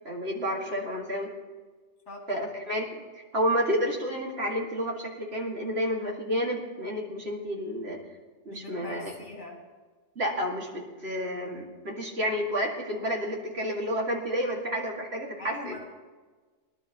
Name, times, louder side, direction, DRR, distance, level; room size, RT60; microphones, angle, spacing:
voice 1, 0.0-1.3 2.3-8.0 8.5-9.1 10.2-15.8, equal, 50° right, -2 dB, 2.5 m, -30 dB
voice 2, 2.1-2.5 8.5-9.6 15.4-15.8, left 2 dB, 60° left, -3 dB, 3.3 m, -42 dB
22.0 x 11.5 x 3.0 m, 1.4 s
omnidirectional pair, 1.4 m